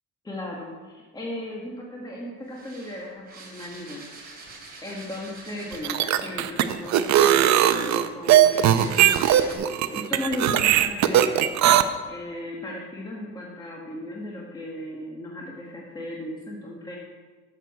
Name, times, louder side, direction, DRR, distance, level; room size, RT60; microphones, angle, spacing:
voice 1, 0.2-4.0 4.8-9.6 9.9-11.8 12.1-17.0, left 1 dB, 10° left, -2 dB, 1.3 m, -36 dB
sound 1, 2.5-6.0 6.8-9.6, right 3 dB, 30° right, 2.7 m, -45 dB
sound 2, 5.7-11.8, right 12 dB, 55° right, 0.6 m, -19 dB
12.5 x 6.8 x 4.7 m, 1.4 s
cardioid pair, 145°, 34 cm